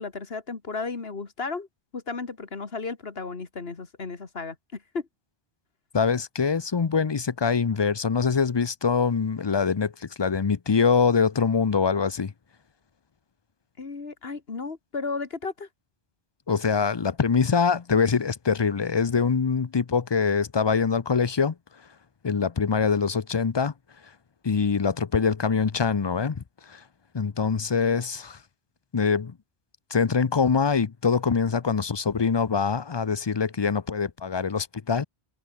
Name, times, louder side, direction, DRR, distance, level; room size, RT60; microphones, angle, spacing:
voice 1, 0.0-1.7 1.9-5.1 13.8-15.7, left 4 dB, 65° left, 2.1 m, -34 dB
voice 2, 5.9-9.9 10.2-12.3 16.5-21.5 22.2-23.7 24.4-26.4 26.7-26.8 27.1-28.4 28.9-29.3 29.9-35.0, left 5 dB, 30° left, 0.5 m, -24 dB
omnidirectional pair, 1.1 m